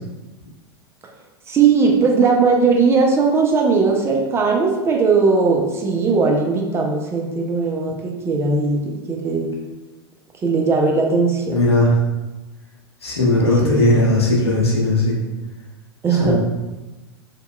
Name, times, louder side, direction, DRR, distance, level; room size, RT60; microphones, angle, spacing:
voice 1, 1.5-9.5 10.4-11.6 13.6-14.0 16.0-16.3, right 4 dB, 20° right, 0 dB, 0.4 m, -18 dB
voice 2, 11.5-11.9 13.0-15.1 16.1-16.3, left 2 dB, 80° left, -4 dB, 0.7 m, -17 dB
2.8 x 2.1 x 2.2 m, 1.1 s
figure-of-eight pair, 90°, 13 cm